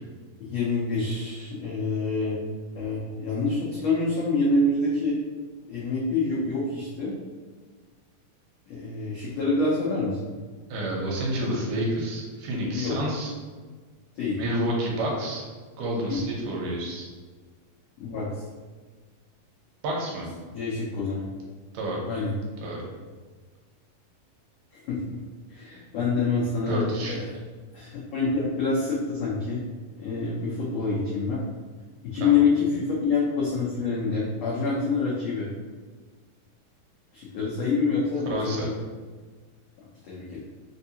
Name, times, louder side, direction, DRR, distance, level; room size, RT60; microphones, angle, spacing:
voice 1, 0.5-2.4 2.7-5.2 5.7-7.1 8.7-10.3 12.7-13.0 14.1-14.4 16.1-16.3 18.0-18.3 20.5-21.3 22.0-22.3 24.7-25.2 25.5-27.3 27.7-29.6 30.0-31.4 32.0-35.5 37.1-38.7 40.1-40.4, left 3 dB, 80° left, -7 dB, 1.4 m, -26 dB
voice 2, 10.7-13.3 14.4-15.5 15.8-17.1 19.8-20.3 21.7-22.0 22.6-22.8 26.7-27.2 32.2-32.4 38.3-38.7, right 1 dB, 75° right, -2 dB, 2.3 m, -29 dB
5.1 x 2.7 x 2.7 m, 1.4 s
omnidirectional pair, 3.9 m